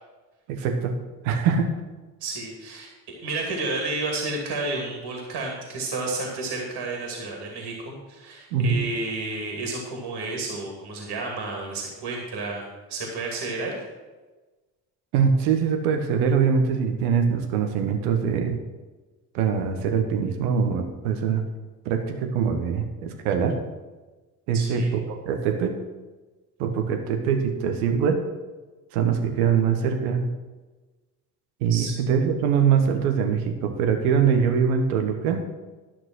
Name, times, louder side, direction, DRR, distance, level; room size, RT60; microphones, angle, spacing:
voice 1, 0.5-1.0 1.2-1.7 8.5-8.8 15.1-18.6 19.3-21.4 21.8-23.6 24.5-25.7 26.6-28.2 28.9-30.3 31.6-35.4, right 6 dB, 80° right, 5 dB, 1.2 m, -23 dB
voice 2, 2.2-13.8 24.5-24.9 31.7-31.9, right 3 dB, 60° right, 0 dB, 2.5 m, -31 dB
11.5 x 6.1 x 6.2 m, 1.2 s
hypercardioid pair, 45°, 44 cm